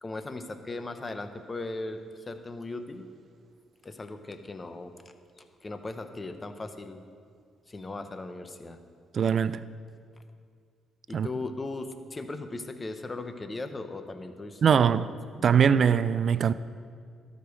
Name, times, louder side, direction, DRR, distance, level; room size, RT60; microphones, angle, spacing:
voice 1, 0.0-3.1 3.8-4.9 5.4-7.0 7.7-8.8 11.1-15.0 15.4-16.0, left 2 dB, 30° left, 0.9 m, -38 dB
voice 2, 9.1-9.6 11.1-11.3 14.6-15.1 15.4-16.5, right 7 dB, 55° right, 0.3 m, -22 dB
12.5 x 5.3 x 6.3 m
supercardioid pair, 65°, 0 cm